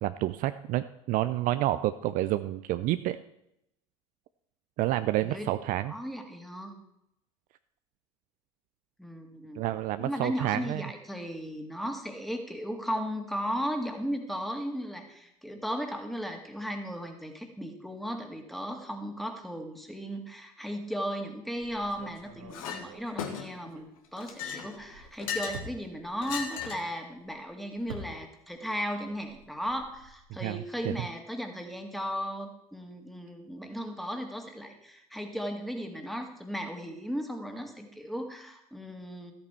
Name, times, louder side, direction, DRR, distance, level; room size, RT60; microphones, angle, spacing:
voice 1, 0.0-3.2 4.8-5.9 9.6-10.8 30.4-31.1, right 15 dB, 50° right, 12 dB, 0.5 m, -29 dB
voice 2, 5.9-6.7 9.0-9.6 10.0-39.3, equal, ahead, 4 dB, 2.1 m, -36 dB
sound 1, 21.6-24.3 24.6-28.7 28.9-30.2, right 2 dB, 75° right, 2.0 m, -48 dB
Chink clink, 22.5-22.8 23.2-23.7 24.2-25.7 26.2-26.9, left 7 dB, 75° left, 1.5 m, -36 dB
13.5 x 8.7 x 4.5 m, 0.82 s
hypercardioid pair, 70°, 18 cm